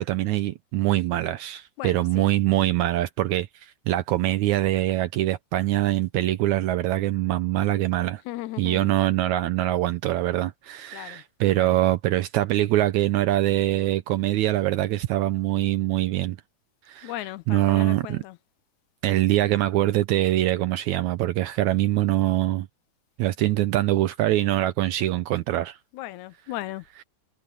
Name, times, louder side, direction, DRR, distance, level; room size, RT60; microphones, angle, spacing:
voice 1, 0.0-8.2 8.6-16.4 16.9-17.1 17.5-18.2 19.0-22.7 23.2-25.8, right 15 dB, 75° right, 2.1 m, -23 dB
voice 2, 1.8-2.3 8.3-8.9 10.9-11.2 11.6-11.8 17.0-18.4 25.9-26.8, left 16 dB, 75° left, 2.1 m, -36 dB
omnidirectional pair, 3.5 m